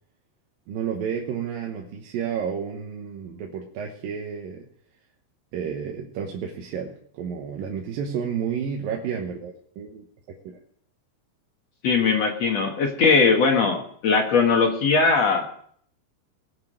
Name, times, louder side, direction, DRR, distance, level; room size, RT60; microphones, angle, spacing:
voice 1, 0.7-4.7 5.5-10.6, right 7 dB, 80° right, 1 dB, 2.9 m, -31 dB
voice 2, 11.8-15.5, left 4 dB, 55° left, 2 dB, 2.4 m, -20 dB
20.0 x 7.3 x 6.4 m, 0.62 s
omnidirectional pair, 4.0 m